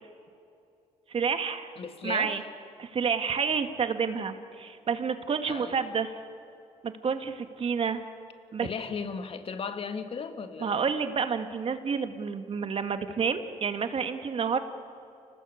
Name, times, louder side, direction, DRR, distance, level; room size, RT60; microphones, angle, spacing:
voice 1, 1.1-1.7 2.0-2.4 2.8-6.1 6.8-8.0 8.5-8.7 10.6-14.6, right 6 dB, 45° right, 8 dB, 1.8 m, -29 dB
voice 2, 1.8-2.5 5.4-5.8 8.6-10.9, left 5 dB, 45° left, 8 dB, 2.0 m, -36 dB
29.5 x 19.5 x 8.5 m, 2.6 s
cardioid pair, 100°, 13 cm